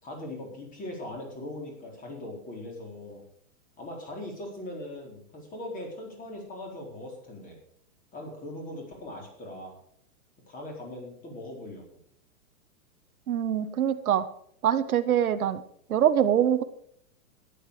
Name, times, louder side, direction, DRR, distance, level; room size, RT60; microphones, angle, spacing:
voice 1, 0.0-3.2 3.8-7.6 8.1-9.7 10.5-11.8, left 1 dB, 20° left, 1 dB, 4.4 m, -40 dB
voice 2, 13.3-14.3 14.6-15.6 15.9-16.6, right 9 dB, 80° right, 9 dB, 1.4 m, -24 dB
14.5 x 11.0 x 5.1 m, 0.66 s
hypercardioid pair, 155°, 43 cm